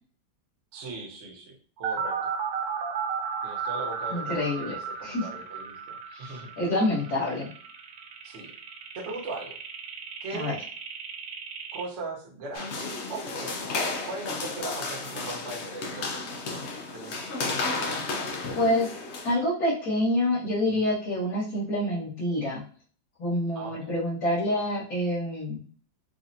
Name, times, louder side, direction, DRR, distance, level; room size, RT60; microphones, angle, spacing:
voice 1, 0.7-2.2 3.4-6.5 8.2-8.5 8.9-9.6 10.2-10.6 11.7-13.7 14.1-16.4 16.9-17.3 20.6-20.8 23.5-23.9, right 3 dB, 45° right, -1 dB, 1.0 m, -39 dB
sound 1, 1.8-11.8, right 6 dB, 75° right, 1.3 m, -34 dB
voice 2, 4.1-4.7 5.0-5.3 6.1-7.5 10.3-10.5 18.5-18.9 19.2-22.6 23.2-25.6, left 1 dB, 55° left, -11 dB, 2.1 m, -27 dB
sound 2, 12.5-19.3, left 3 dB, 75° left, 0.6 m, -33 dB
4.9 x 2.4 x 2.6 m, 0.43 s
omnidirectional pair, 2.0 m